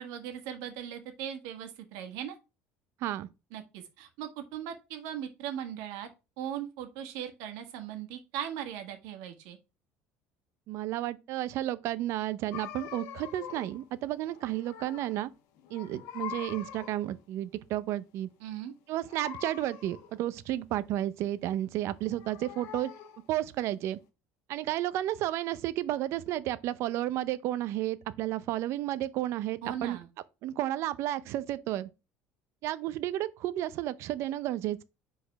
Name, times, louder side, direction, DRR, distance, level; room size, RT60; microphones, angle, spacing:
voice 1, 0.0-2.3 3.5-6.1 6.4-9.6 18.4-18.7 29.6-30.1, right 10 dB, 85° right, 1.6 m, -39 dB
voice 2, 10.7-15.3 15.7-18.3 18.9-22.9 23.3-24.0 24.5-30.0 30.4-31.9 32.6-34.8, right 14 dB, 55° right, 0.6 m, -32 dB
sound 1, 12.5-13.8 14.2-15.3 15.6-17.1 19.1-20.2 21.8-23.3, left 9 dB, 80° left, 1.1 m, -44 dB
5.0 x 4.1 x 5.7 m
cardioid pair, 155°, 5 cm